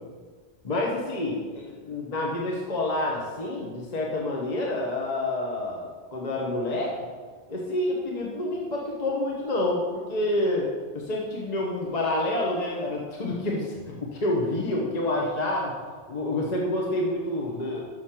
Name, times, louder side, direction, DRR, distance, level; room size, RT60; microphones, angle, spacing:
voice 1, 0.6-7.0 7.5-10.7 10.9-15.7 16.1-17.8, left 1 dB, 40° left, -2 dB, 1.1 m, -28 dB
6.6 x 6.2 x 5.8 m, 1.5 s
omnidirectional pair, 1.1 m